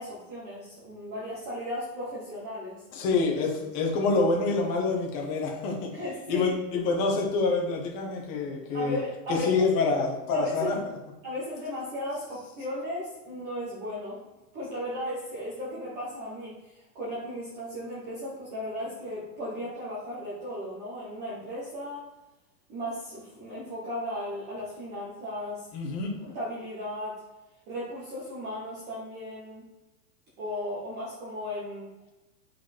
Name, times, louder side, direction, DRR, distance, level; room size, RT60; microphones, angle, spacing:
voice 1, 0.0-2.8 5.9-6.5 8.7-9.7 10.3-10.9 11.2-14.2 14.5-22.1 22.7-25.7 26.2-27.2 27.7-29.6 30.4-31.9, left 1 dB, 20° right, -6 dB, 1.2 m, -36 dB
voice 2, 2.9-5.9 6.3-9.0 9.3-10.8 25.7-26.1, left 3 dB, 25° left, 0 dB, 1.2 m, -26 dB
5.5 x 4.5 x 4.4 m, 1.1 s
supercardioid pair, 175°, 49 cm